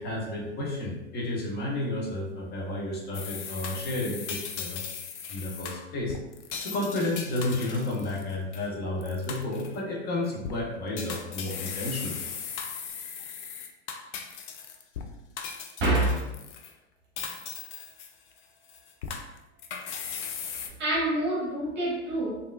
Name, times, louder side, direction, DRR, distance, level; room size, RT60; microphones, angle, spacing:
voice 1, 0.0-4.8 5.3-6.2 6.6-12.2, left 2 dB, 25° left, -2 dB, 0.9 m, -31 dB
sound 1, 3.1-8.7 9.0-9.8 10.3-10.6 11.0-15.1 15.4-16.7 17.2-18.4 18.7-20.7, left 7 dB, 75° left, 0.5 m, -38 dB
voice 2, 15.8-16.3 20.8-22.4, right 1 dB, 30° right, -3 dB, 0.9 m, -26 dB
3.4 x 2.5 x 2.3 m, 1.0 s
hypercardioid pair, 105°, 35 cm